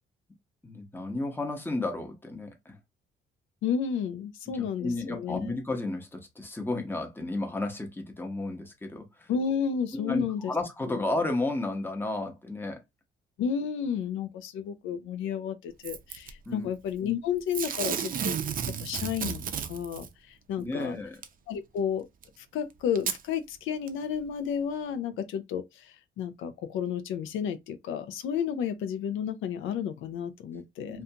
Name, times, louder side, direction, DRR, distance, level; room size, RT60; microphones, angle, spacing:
voice 1, 0.6-2.8 4.5-9.3 9.9-12.8 16.5-16.7 20.6-21.2 30.9-31.0, left 2 dB, 10° left, 0.8 m, -33 dB
voice 2, 3.6-5.4 9.3-10.5 13.4-18.3 18.8-21.0 21.5-22.1 22.4-31.0, left 7 dB, 80° left, 0.4 m, -32 dB
Packing tape duct tape / Tearing, 15.8-16.3 17.5-20.1 21.2-21.3 22.2-22.3 23.0-23.2 23.9-24.0, right 7 dB, 45° right, 0.4 m, -32 dB
2.5 x 2.3 x 2.7 m
cardioid pair, 90°, 20 cm